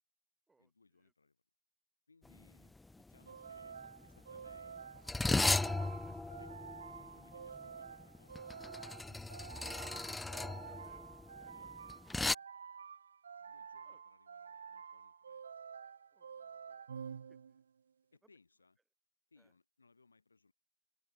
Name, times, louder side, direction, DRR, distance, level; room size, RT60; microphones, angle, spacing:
voice 1, 0.6-1.4 2.1-5.1 6.0-6.5 6.9-10.0 11.5-12.4 13.4-15.4 18.1-18.8 19.3-20.5, left 4 dB, 80° left, 4.4 m, -68 dB
sound 1, 2.3-2.5 2.8-3.1 3.8-12.3, left 2 dB, 10° left, 0.4 m, -37 dB
sound 2, 3.3-17.8, right 7 dB, 70° right, 1.6 m, -50 dB
voice 2, 5.6-6.3 9.5-12.0 13.8-14.0 16.1-17.6 18.2-18.3 19.4-19.5, right 3 dB, 10° right, 3.9 m, -69 dB
open air
figure-of-eight pair, 90°, 0 cm